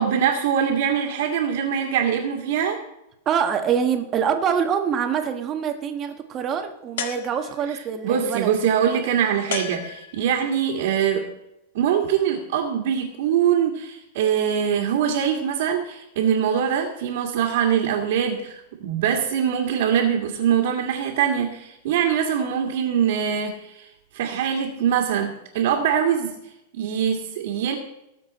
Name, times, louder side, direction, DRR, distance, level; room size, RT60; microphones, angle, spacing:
voice 1, 0.0-2.8 8.0-11.2 11.7-23.9 24.1-26.4 26.7-27.8, right 8 dB, 65° right, -2 dB, 2.0 m, -23 dB
voice 2, 3.2-8.5, right 7 dB, 25° right, 6 dB, 1.4 m, -25 dB
sound 1, 7.0-7.8 9.5-10.5, left 8 dB, 70° left, 1.5 m, -33 dB
19.0 x 7.3 x 4.3 m, 0.86 s
supercardioid pair, 155°, 0 cm